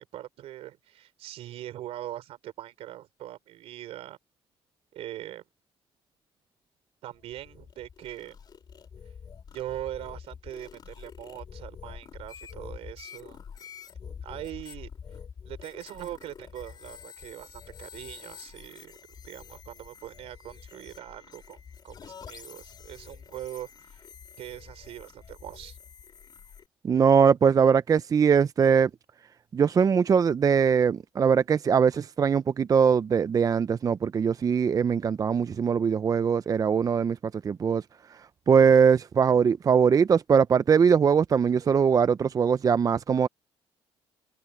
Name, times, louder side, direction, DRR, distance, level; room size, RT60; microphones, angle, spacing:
voice 1, 0.0-4.2 4.9-5.4 7.0-8.4 9.5-13.4 14.1-14.9 15.5-19.0 19.2-21.6 21.8-24.0 24.4-25.8, right 13 dB, 80° right, 4.1 m, -41 dB
sound 1, 7.1-26.7, left 7 dB, 45° left, 3.4 m, -47 dB
voice 2, 26.8-28.9 29.5-37.2 37.4-37.8 38.5-43.3, right 6 dB, 35° right, 0.5 m, -21 dB
cardioid pair, 100°, 10 cm